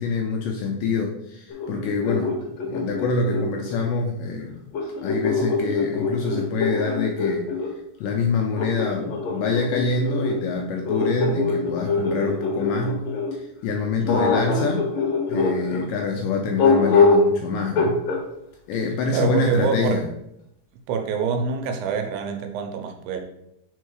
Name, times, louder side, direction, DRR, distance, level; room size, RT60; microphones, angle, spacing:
voice 1, 0.0-2.4 2.7-4.6 5.0-7.5 8.0-14.9 15.3-18.0 18.7-20.1, left 4 dB, 85° left, 2 dB, 1.9 m, -26 dB
sound 1, 1.5-3.9 4.7-7.7 8.6-13.3 14.1-15.8 16.6-17.3 17.8-18.2, left 4 dB, 65° left, 1.9 m, -23 dB
voice 2, 14.0-14.4 19.1-20.1 20.9-23.2, right 6 dB, 85° right, 4 dB, 2.4 m, -26 dB
4.6 x 4.4 x 4.7 m, 0.80 s
omnidirectional pair, 4.2 m